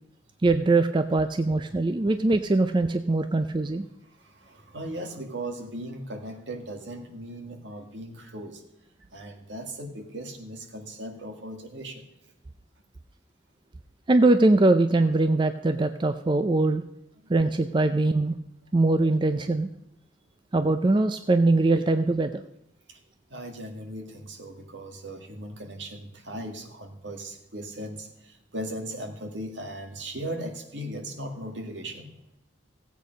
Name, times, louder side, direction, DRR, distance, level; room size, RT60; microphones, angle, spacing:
voice 1, 0.4-3.9 14.1-16.8 17.3-18.4 18.7-19.7 20.5-22.4, right 2 dB, 25° right, 9 dB, 0.4 m, -22 dB
voice 2, 4.0-8.6 9.1-12.3 17.9-18.0 22.9-23.0 23.3-32.2, right 1 dB, 70° right, 4 dB, 1.9 m, -38 dB
15.5 x 8.3 x 5.2 m, 0.84 s
head